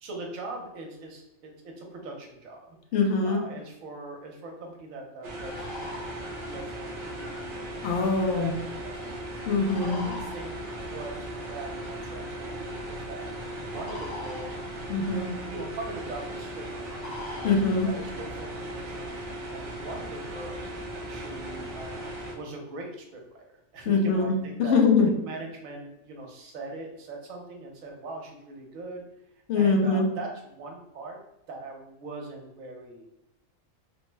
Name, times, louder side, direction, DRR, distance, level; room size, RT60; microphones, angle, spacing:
voice 1, 0.0-2.7 3.2-8.0 8.3-13.2 13.5-14.6 15.4-16.8 17.3-23.5 23.7-24.8 25.2-29.0 29.6-31.2 31.5-33.1, right 2 dB, 80° right, 1 dB, 1.1 m, -41 dB
voice 2, 2.9-3.4 7.8-8.5 9.5-10.0 14.9-15.3 17.4-17.9 23.9-24.3 24.6-25.1 29.5-30.0, left 4 dB, 65° left, 2 dB, 0.8 m, -23 dB
sound 1, 5.2-22.3, right 1 dB, 55° right, 0.6 m, -37 dB
sound 2, 5.3-19.9, left 2 dB, 45° left, 1.1 m, -47 dB
3.2 x 2.0 x 3.2 m, 0.88 s
omnidirectional pair, 1.4 m